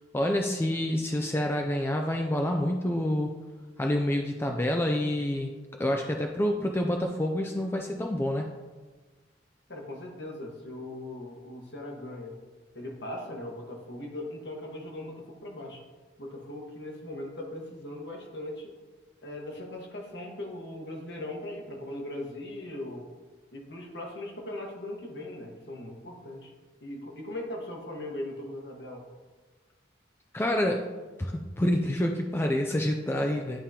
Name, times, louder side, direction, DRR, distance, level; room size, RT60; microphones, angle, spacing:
voice 1, 0.1-3.3 3.8-5.5 5.8-8.5 30.3-30.8 31.2-33.6, left 1 dB, 10° left, 2 dB, 0.3 m, -27 dB
voice 2, 9.7-12.4 12.7-15.8 16.2-18.7 19.2-23.0 23.5-26.5 26.8-29.0, left 1 dB, 60° left, 0 dB, 1.3 m, -39 dB
11.0 x 3.7 x 2.8 m, 1.3 s
head